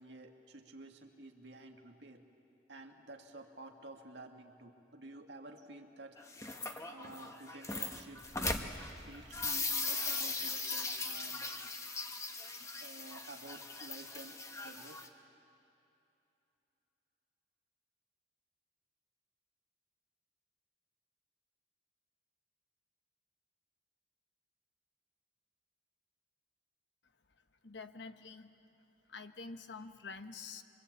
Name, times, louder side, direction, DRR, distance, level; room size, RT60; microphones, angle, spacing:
voice 1, 0.0-2.2 2.7-6.2 6.9-8.2 9.1-11.5 12.8-15.0, right 2 dB, 90° right, 3 dB, 2.1 m, -52 dB
sound 1, 6.2-15.1, left 3 dB, 20° left, 1.3 m, -39 dB
voice 2, 27.6-28.5 29.1-30.6, left 4 dB, 85° left, 8 dB, 1.2 m, -47 dB
25.0 x 23.5 x 8.5 m, 2.8 s
head